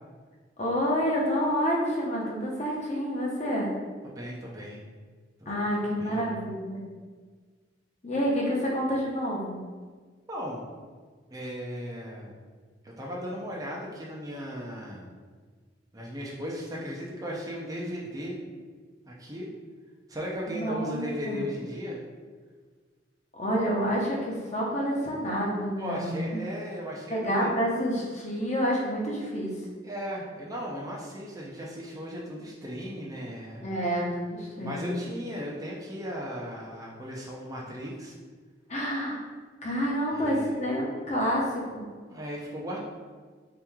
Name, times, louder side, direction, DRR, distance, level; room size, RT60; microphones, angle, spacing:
voice 1, 0.6-3.7 5.5-6.8 8.0-9.6 20.5-21.4 23.3-26.4 27.1-29.5 33.6-34.9 38.7-39.2 39.6-41.9, equal, 40° left, -3 dB, 0.9 m, -28 dB
voice 2, 4.0-4.8 5.4-5.5 6.0-6.3 10.3-10.6 11.3-12.4 12.8-15.1 15.9-18.4 19.1-19.5 20.1-22.0 25.8-27.5 29.8-33.6 34.6-38.2 40.1-40.6 42.1-42.8, equal, 20° right, -3 dB, 0.5 m, -36 dB
4.3 x 2.9 x 3.6 m, 1.5 s
head